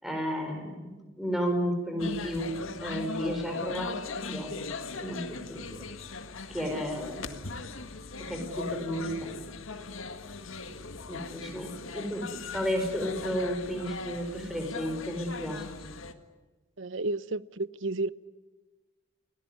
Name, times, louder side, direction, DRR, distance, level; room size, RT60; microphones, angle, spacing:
voice 1, 0.0-4.0 4.3-4.6 5.0-5.8 6.5-7.3 8.2-9.4 11.1-12.3 12.5-15.9, equal, ahead, 4.8 m, -33 dB
sound 1, 2.0-16.1, left 4 dB, 75° left, 1.8 m, -39 dB
voice 2, 16.8-18.1, right 2 dB, 65° right, 0.8 m, -31 dB
29.5 x 18.5 x 9.7 m
head